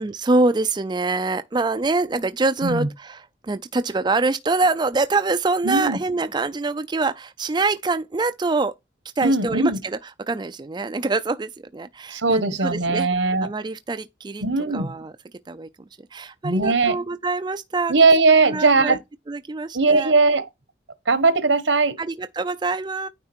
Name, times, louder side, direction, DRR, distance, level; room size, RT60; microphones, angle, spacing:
voice 1, 0.0-8.7 9.2-10.0 10.3-13.1 13.4-14.4 14.7-15.1 15.5-15.7 16.1-17.9 18.4-19.0 19.3-20.1 22.0-23.1, right 3 dB, 25° right, 0.4 m, -25 dB
voice 2, 5.6-6.0 9.2-9.8 12.1-13.5 14.4-14.9 16.4-17.0 17.9-19.0 19.7-20.5 21.1-22.0, right 3 dB, 75° right, 1.2 m, -19 dB
9.4 x 3.4 x 4.3 m
head